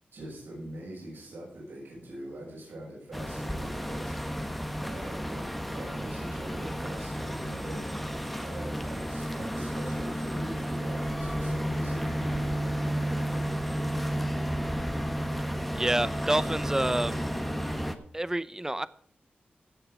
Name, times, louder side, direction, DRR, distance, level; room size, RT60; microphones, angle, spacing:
voice 1, 0.1-4.5 4.8-7.9 8.4-12.8, right 1 dB, 85° right, -4 dB, 6.4 m, -43 dB
sound 1, 3.1-17.9, equal, 5° left, 1.3 m, -32 dB
voice 2, 15.7-17.3 18.1-18.9, right 1 dB, 15° right, 17 dB, 0.7 m, -28 dB
17.0 x 6.7 x 4.9 m, 0.64 s
cardioid pair, 65°, 3 cm